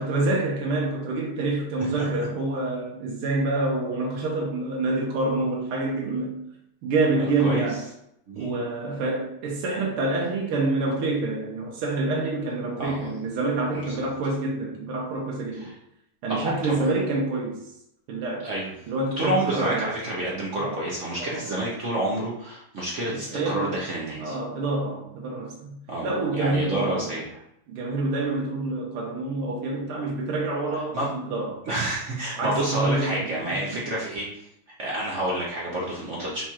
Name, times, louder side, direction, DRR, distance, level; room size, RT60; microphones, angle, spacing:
voice 1, 0.0-6.4 6.8-7.8 8.4-15.7 16.2-17.6 18.1-18.5 18.9-19.9 20.6-20.9 21.2-21.4 23.1-23.8 24.2-25.8 26.0-27.2 27.7-31.6 32.4-33.6, right 2 dB, 85° right, -2 dB, 1.7 m, -27 dB
voice 2, 7.4-7.8 8.3-8.5 12.8-13.1 13.7-14.1 15.5-15.7 16.3-16.8 18.4-18.7 19.2-24.4 25.9-27.3 30.7-31.1 31.6-34.3 34.8-36.4, right 1 dB, 65° right, -5 dB, 0.7 m, -29 dB
4.3 x 2.4 x 4.3 m, 0.76 s
omnidirectional pair, 2.4 m